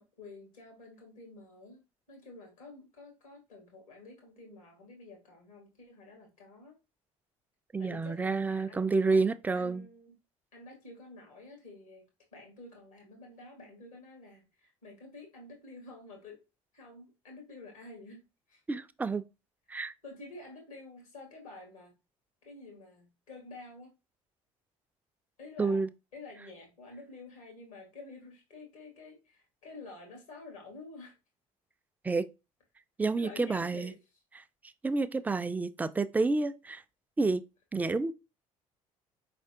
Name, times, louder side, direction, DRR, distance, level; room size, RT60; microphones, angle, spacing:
voice 1, 0.2-6.8 7.8-8.8 9.1-9.3 9.5-10.1 10.5-12.0 12.3-16.4 16.7-18.2 18.5-18.6 20.0-21.9 22.4-23.9 25.4-25.8 26.1-31.1 33.2-33.9, left 2 dB, 85° left, 1.8 m, -49 dB
voice 2, 7.7-9.9 18.7-19.2 19.7-19.9 25.6-25.9 32.0-32.3 33.0-33.9 34.8-36.8 37.2-37.4 37.7-38.1, right 3 dB, 10° right, 0.3 m, -29 dB
4.6 x 3.4 x 2.7 m
hypercardioid pair, 60°, 17 cm